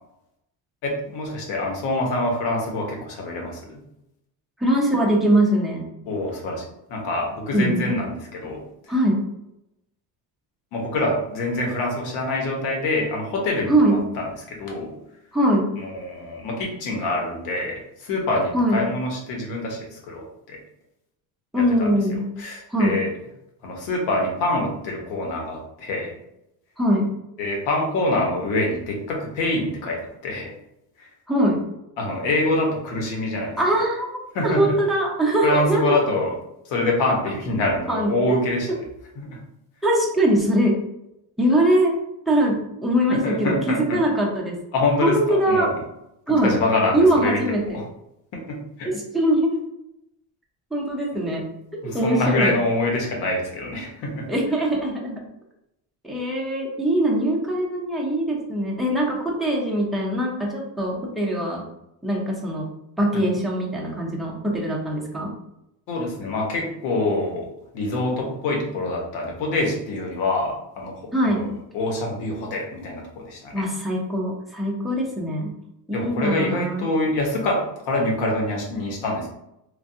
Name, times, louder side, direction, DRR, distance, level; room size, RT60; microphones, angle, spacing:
voice 1, 0.8-3.8 6.1-6.6 6.9-8.9 10.7-14.9 15.8-20.6 21.6-21.9 22.4-23.1 23.6-26.1 27.4-30.5 31.0-31.1 32.0-33.6 34.3-34.7 35.4-36.3 36.7-38.7 39.2-39.4 43.1-44.0 44.7-45.7 46.3-47.8 48.5-48.9 51.8-54.2 65.9-67.5 67.7-73.5 75.9-79.3, left 2 dB, 90° left, 0 dB, 1.0 m, -25 dB
voice 2, 4.6-5.9 7.5-7.9 8.9-9.2 13.7-14.0 15.3-15.7 18.5-18.8 21.5-22.3 22.7-23.0 26.8-27.1 31.3-31.6 33.6-34.1 34.4-36.0 37.9-38.4 39.8-40.8 41.4-42.0 42.3-44.6 45.0-45.7 46.3-46.5 46.9-47.8 48.9-49.6 50.7-51.4 51.9-52.5 54.3-55.2 56.0-61.6 62.0-62.7 63.0-65.3 71.1-71.5 73.5-75.5 75.9-76.9, right 1 dB, ahead, -4 dB, 0.5 m, -22 dB
3.3 x 2.3 x 2.7 m, 0.83 s
cardioid pair, 140°, 43 cm